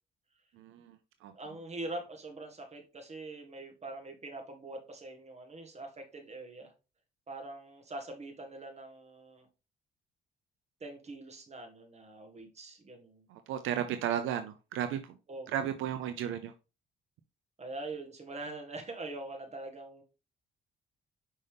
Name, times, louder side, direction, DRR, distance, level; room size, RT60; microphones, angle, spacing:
voice 1, 0.5-1.3 13.3-15.1 15.5-16.5, right 10 dB, 85° right, 9 dB, 0.6 m, -34 dB
voice 2, 1.3-6.7 7.3-9.5 10.8-13.3 15.3-15.5 17.6-20.0, right 2 dB, 35° right, 4 dB, 1.7 m, -43 dB
5.4 x 5.3 x 3.4 m, 0.30 s
cardioid pair, 90°, 20 cm